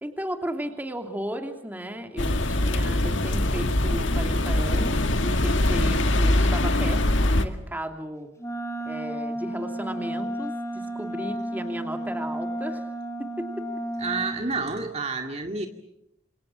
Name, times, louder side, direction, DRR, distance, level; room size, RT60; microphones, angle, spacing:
voice 1, 0.0-8.3 8.8-12.9 13.2-13.7, equal, 10° right, 5 dB, 2.8 m, -35 dB
sound 1, 2.2-7.4, left 1 dB, 70° left, 2.1 m, -23 dB
Wind instrument woodwind instrument, 8.4-14.4, right 1 dB, 15° left, 3.7 m, -32 dB
voice 2, 14.0-15.7, right 4 dB, 35° right, 4 dB, 2.2 m, -29 dB
28.0 x 27.5 x 7.5 m, 0.80 s
head